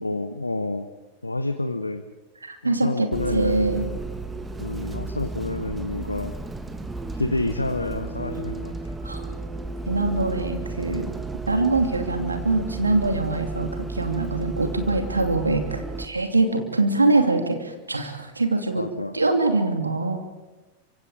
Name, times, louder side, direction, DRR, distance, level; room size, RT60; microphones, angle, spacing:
voice 1, 0.0-0.9 1.2-2.0 2.6-3.6 4.6-6.3 7.1-8.9 16.9-17.3 18.7-19.1, left 2 dB, 80° left, 9 dB, 1.0 m, -29 dB
voice 2, 2.4-3.9 9.0-9.2 9.9-11.1 11.5-18.8 19.1-20.2, right 2 dB, 80° right, 5 dB, 2.7 m, -23 dB
Bus, 3.1-16.0, right 3 dB, 10° right, 1.7 m, -33 dB
26.0 x 25.0 x 5.0 m, 1.1 s
figure-of-eight pair, 90°, 0 cm